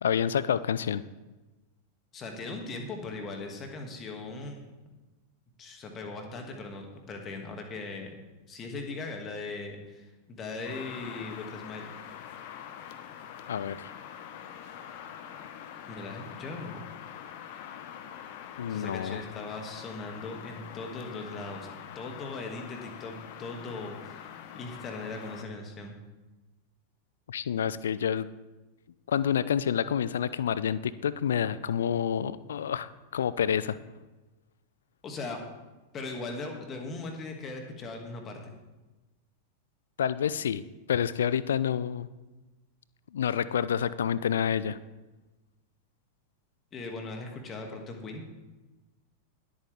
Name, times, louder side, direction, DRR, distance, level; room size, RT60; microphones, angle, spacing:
voice 1, 0.0-1.0 13.5-13.9 18.6-19.2 27.3-28.3 29.1-33.8 40.0-40.6 40.9-42.1 43.1-44.8, left 8 dB, 65° left, 17 dB, 0.5 m, -28 dB
voice 2, 2.1-4.7 5.6-8.1 8.5-11.9 15.9-16.8 18.7-21.7 21.9-26.0 35.0-35.4 35.9-38.5 46.7-48.3, left 3 dB, 25° left, 3 dB, 2.4 m, -39 dB
sound 1, 10.6-25.4, left 9 dB, 50° left, 1.1 m, -44 dB
19.5 x 8.7 x 3.6 m, 1.1 s
figure-of-eight pair, 90°, 0 cm